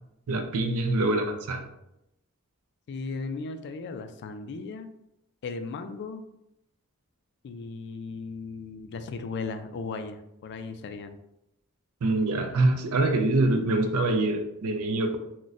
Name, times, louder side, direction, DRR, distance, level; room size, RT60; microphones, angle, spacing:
voice 1, 0.3-1.7 12.0-15.2, right 2 dB, 75° right, 5 dB, 0.5 m, -25 dB
voice 2, 2.9-4.9 5.4-6.2 7.4-11.1, left 4 dB, 50° left, 8 dB, 0.3 m, -36 dB
3.9 x 2.2 x 2.4 m, 0.85 s
head